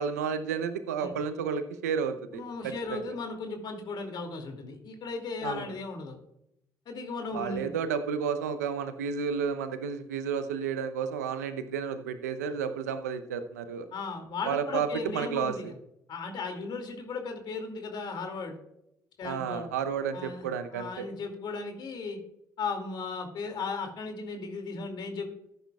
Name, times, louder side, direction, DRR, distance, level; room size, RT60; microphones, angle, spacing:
voice 1, 0.0-3.0 5.4-5.6 7.3-13.9 14.5-14.9 15.1-15.7 19.2-21.1, right 6 dB, 85° right, 10 dB, 0.7 m, -32 dB
voice 2, 2.3-6.2 6.9-7.7 13.9-15.8 16.1-18.6 19.2-19.7 20.1-20.5 20.7-22.2 22.6-25.3, left 4 dB, 60° left, 5 dB, 2.5 m, -36 dB
14.0 x 10.5 x 2.4 m, 0.79 s
hypercardioid pair, 50°, 9 cm